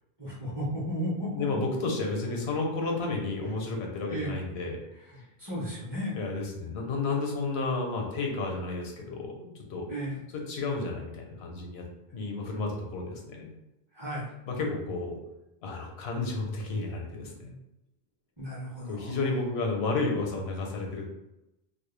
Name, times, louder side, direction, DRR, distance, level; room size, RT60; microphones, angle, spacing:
voice 1, 0.2-1.5 4.1-4.4 5.1-6.2 9.9-10.2 12.1-12.2 13.9-14.3 18.4-19.2, equal, 30° right, -7 dB, 0.6 m, -34 dB
voice 2, 1.3-4.8 6.1-9.9 10.3-11.9 12.1-13.5 14.5-15.2 15.6-17.5 18.8-21.1, left 3 dB, 80° left, 1 dB, 0.9 m, -32 dB
2.2 x 2.0 x 3.1 m, 0.91 s
omnidirectional pair, 1.0 m